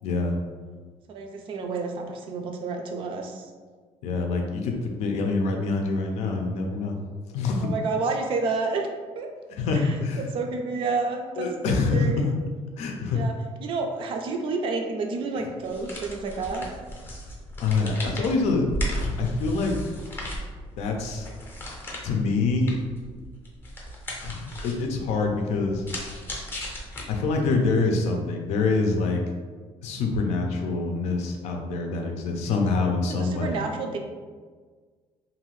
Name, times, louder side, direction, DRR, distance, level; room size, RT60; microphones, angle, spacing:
voice 1, 0.0-0.4 4.0-7.0 7.3-7.7 9.5-10.3 11.4-12.1 12.8-13.2 17.6-20.0 20.8-21.3 22.0-22.8 24.2-25.8 27.1-29.2 29.8-33.6, left 3 dB, 80° left, 2 dB, 0.5 m, -25 dB
voice 2, 1.1-3.5 7.6-8.9 9.1-9.3 9.7-9.9 10.3-11.5 11.9-12.2 13.1-13.3 13.6-16.7 33.1-34.0, right 4 dB, 50° right, 3 dB, 0.4 m, -29 dB
sound 1, 15.6-27.5, equal, 20° left, 0.6 m, -36 dB
2.6 x 2.4 x 3.1 m, 1.5 s
cardioid pair, 160°, 11 cm